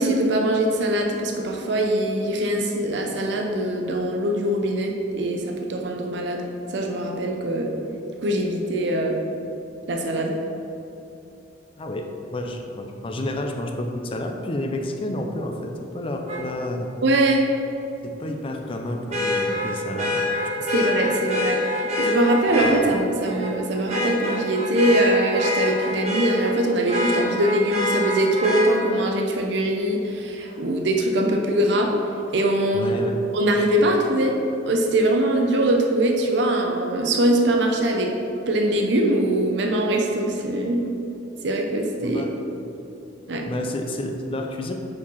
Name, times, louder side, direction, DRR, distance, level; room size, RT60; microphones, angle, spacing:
voice 1, 0.0-6.4 6.7-7.7 8.2-9.2 9.9-10.3 17.0-17.5 20.7-31.9 32.3-33.0 33.3-34.3 34.7-38.1 38.5-40.8 41.4-42.2 43.3-43.4, right 1 dB, 65° right, 1 dB, 0.6 m, -22 dB
voice 2, 11.8-16.9 18.0-20.2 20.5-20.6 32.7-33.2 42.0-42.3 43.4-44.7, left 1 dB, 30° left, 3 dB, 0.5 m, -30 dB
Vehicle horn car horn honking, 16.3-16.4 19.1-22.7 23.2-23.5 23.9-26.5 26.9-28.6 30.5-30.6, left 1 dB, 35° right, 1.3 m, -25 dB
4.8 x 4.6 x 5.4 m, 2.8 s
head